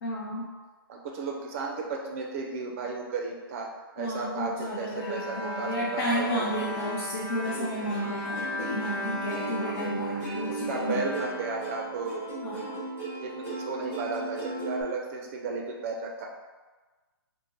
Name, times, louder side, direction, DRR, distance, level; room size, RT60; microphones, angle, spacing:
voice 1, 0.0-0.5 4.0-11.1 12.4-12.8, equal, 50° left, -5 dB, 0.6 m, -32 dB
voice 2, 0.9-7.0 7.4-8.0 9.4-9.7 10.5-12.2 13.2-16.2, right 4 dB, 35° right, 0 dB, 0.5 m, -34 dB
Bowed string instrument, 4.9-12.3, left 2 dB, 5° right, 1.1 m, -38 dB
Plucked string instrument, 7.4-14.8, right 2 dB, 20° left, 1.3 m, -36 dB
3.0 x 2.1 x 3.4 m, 1.3 s
hypercardioid pair, 150°, 13 cm